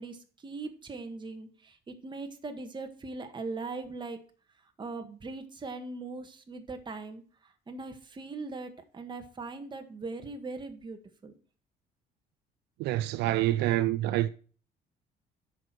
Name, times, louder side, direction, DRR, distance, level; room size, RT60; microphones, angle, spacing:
voice 1, 0.0-4.2 4.8-11.3, right 3 dB, 25° right, 1.8 m, -40 dB
voice 2, 12.8-14.3, right 15 dB, 85° right, 0.5 m, -27 dB
7.7 x 6.4 x 7.5 m
cardioid pair, 110°, 17 cm